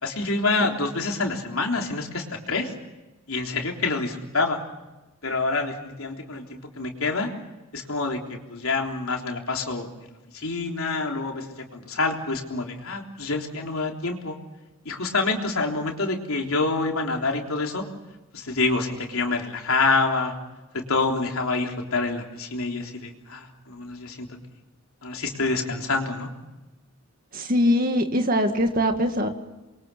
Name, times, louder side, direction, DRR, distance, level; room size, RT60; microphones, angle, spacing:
voice 1, 0.0-2.7 3.3-4.6 5.2-7.3 7.7-8.2 8.5-9.9 10.3-14.4 14.9-17.9 18.3-20.4 20.7-24.3 25.0-26.3, left 3 dB, 80° left, 1 dB, 3.6 m, -27 dB
voice 2, 27.3-29.3, equal, 40° right, 6 dB, 2.1 m, -22 dB
28.0 x 23.0 x 7.0 m, 1.1 s
head